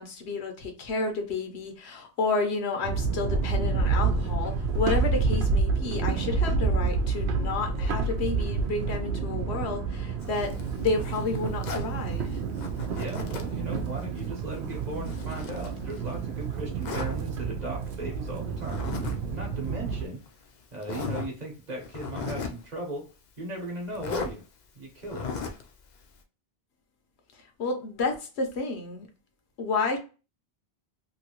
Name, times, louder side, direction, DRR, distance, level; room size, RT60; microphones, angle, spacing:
voice 1, 0.0-12.3 27.6-29.1 29.6-30.0, left 3 dB, 80° left, 1.1 m, -31 dB
sound 1, 2.8-20.1, right 4 dB, 85° right, 0.9 m, -29 dB
Zipper (clothing), 10.2-11.9 12.6-13.6 14.0-16.2 16.8-17.1 18.6-19.2 19.4-19.6 20.3-20.4 20.8-21.3 21.8-22.6 24.0-24.3 25.0-25.7, left 5 dB, 55° left, 0.6 m, -36 dB
voice 2, 12.9-18.9 19.3-20.2 20.7-23.1 23.4-24.4 24.7-25.3, right 1 dB, 45° right, 1.0 m, -37 dB
2.9 x 2.7 x 2.9 m
omnidirectional pair, 1.1 m